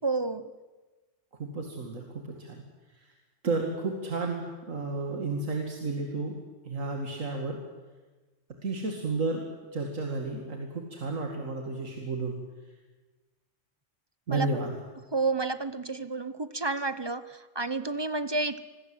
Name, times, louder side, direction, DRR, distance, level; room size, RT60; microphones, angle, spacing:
voice 1, 0.0-0.5 14.3-14.6 15.1-18.6, right 3 dB, 25° right, 14 dB, 0.6 m, -30 dB
voice 2, 1.4-2.6 3.4-6.4 6.6-7.6 8.6-9.5 9.7-12.4 14.3-14.7, right 3 dB, 90° right, 2 dB, 2.6 m, -32 dB
25.5 x 21.0 x 7.9 m, 1.3 s
omnidirectional pair, 1.3 m